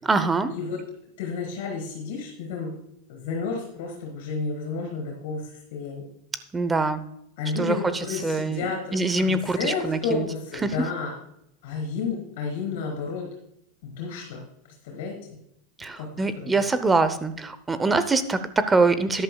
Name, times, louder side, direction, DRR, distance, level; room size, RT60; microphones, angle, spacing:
voice 1, 0.0-0.5 6.5-7.0 7.6-7.8 8.2-8.6 8.9-10.3 10.6-10.7 15.8-19.2, right 3 dB, 10° right, 12 dB, 0.7 m, -23 dB
voice 2, 1.2-2.7 3.1-6.0 7.4-11.1 11.6-13.2 13.8-14.4 14.8-15.4 16.0-16.1 16.3-16.6, left 5 dB, 65° left, 0 dB, 4.3 m, -31 dB
13.5 x 11.0 x 2.3 m, 0.76 s
supercardioid pair, 155°, 0 cm